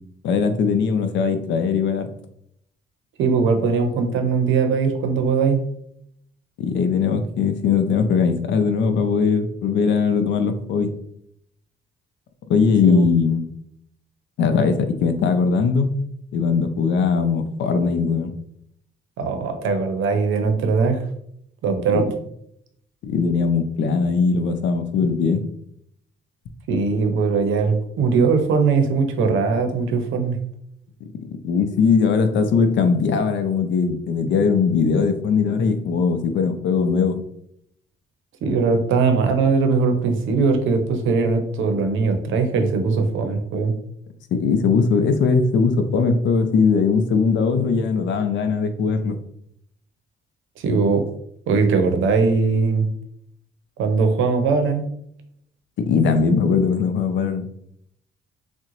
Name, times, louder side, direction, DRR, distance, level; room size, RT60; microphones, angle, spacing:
voice 1, 0.2-2.1 6.6-10.9 12.5-13.5 14.4-15.9 16.3-18.3 21.9-22.0 23.0-25.4 31.0-37.2 44.3-49.2 55.8-57.5, left 5 dB, 70° left, 8 dB, 0.5 m, -20 dB
voice 2, 3.2-5.6 12.8-13.1 19.2-21.0 21.6-22.1 26.7-30.4 38.4-43.7 50.6-51.1 51.5-52.9 53.8-54.9, right 4 dB, 80° right, 5 dB, 0.6 m, -20 dB
3.6 x 2.1 x 3.0 m, 0.71 s
cardioid pair, 90°, 20 cm